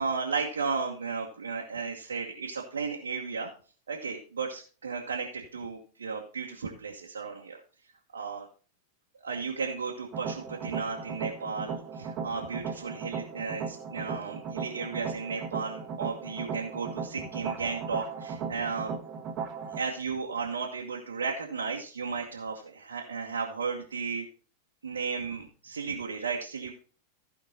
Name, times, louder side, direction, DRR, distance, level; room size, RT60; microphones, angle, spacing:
voice 1, 0.0-3.5 3.9-7.6 8.1-8.5 9.2-18.9 19.7-24.2 24.8-26.7, right 5 dB, 70° right, 0 dB, 1.2 m, -34 dB
sound 1, 10.1-19.8, right 6 dB, 35° right, 1.3 m, -37 dB
15.0 x 5.2 x 4.1 m, 0.39 s
figure-of-eight pair, 90°, 0 cm